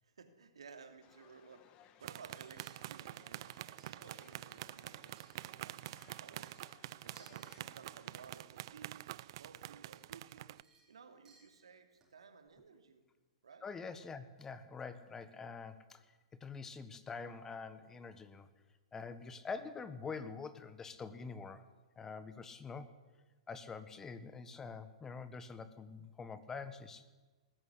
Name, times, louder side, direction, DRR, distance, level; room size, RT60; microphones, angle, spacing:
voice 1, 0.0-3.5 3.9-6.6 7.0-9.1 9.4-10.6 10.9-13.0 13.4-13.7, right 5 dB, 80° right, 6 dB, 2.7 m, -57 dB
sound 1, 1.0-8.3, left 10 dB, 35° left, 2.0 m, -65 dB
sound 2, 2.0-10.6, right 15 dB, 55° right, 0.5 m, -47 dB
sound 3, 2.4-4.1 4.5-5.7 6.0-7.7 8.0-8.6 9.5-9.6 9.9-12.2 12.5-12.6, right 4 dB, 20° right, 5.8 m, -67 dB
voice 2, 13.6-16.0 16.4-18.5 18.9-21.6 22.0-22.9 23.5-27.0, left 5 dB, 15° left, 12 dB, 1.4 m, -45 dB
20.0 x 14.5 x 9.8 m, 1.3 s
hypercardioid pair, 115°, 3 cm